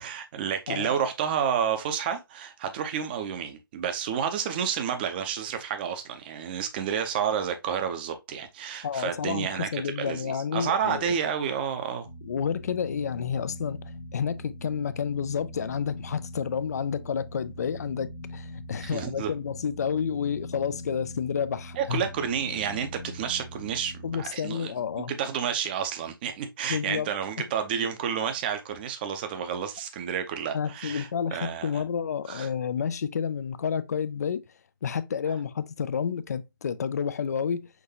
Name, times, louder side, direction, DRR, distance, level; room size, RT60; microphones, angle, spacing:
voice 1, 0.0-12.1 18.8-19.3 21.8-31.8 32.3-32.5, right 8 dB, 25° right, 0.6 m, -30 dB
voice 2, 0.7-1.0 8.8-11.1 12.3-22.0 24.0-25.1 26.7-27.1 30.5-34.5 34.8-37.7, left 7 dB, 45° left, 0.3 m, -30 dB
sound 1, 12.0-24.2, equal, 80° left, 1.1 m, -42 dB
5.9 x 2.6 x 2.7 m
figure-of-eight pair, 140°, 12 cm